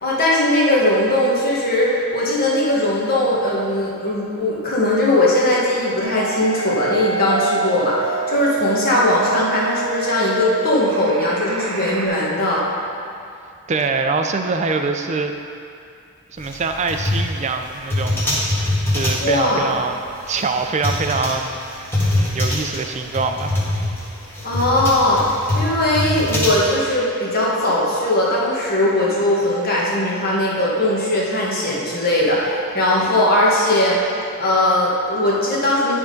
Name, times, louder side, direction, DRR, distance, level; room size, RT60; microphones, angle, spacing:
voice 1, 0.0-12.6 19.2-19.7 24.4-34.0 34.4-36.0, left 1 dB, 45° left, -5 dB, 1.4 m, -19 dB
sound 1, 6.0-12.1, right 5 dB, 85° right, 0.6 m, -27 dB
voice 2, 13.7-15.3 16.3-18.2 18.5-20.0 20.3-23.6, right 4 dB, 30° right, 5 dB, 0.4 m, -24 dB
sound 2, 16.4-26.9, left 1 dB, 10° left, 1.4 m, -24 dB
10.5 x 3.6 x 5.2 m, 2.5 s
head